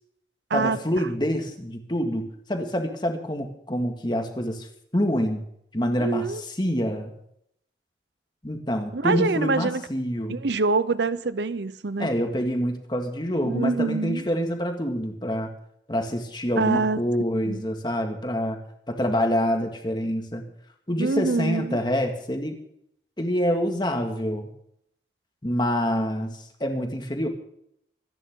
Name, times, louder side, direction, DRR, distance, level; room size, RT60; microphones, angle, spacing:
voice 1, 0.5-4.7 4.9-5.4 5.7-7.1 8.4-10.4 12.0-15.5 15.9-18.6 18.9-20.5 20.9-22.5 23.2-24.5 25.4-27.3, equal, 25° left, 4 dB, 1.9 m, -26 dB
voice 2, 6.0-6.4 8.9-9.8 10.3-12.1 13.4-14.2 16.6-17.0 17.5-17.6 21.0-21.8, right 4 dB, 75° right, 15 dB, 0.7 m, -25 dB
26.0 x 10.5 x 3.8 m, 0.73 s
head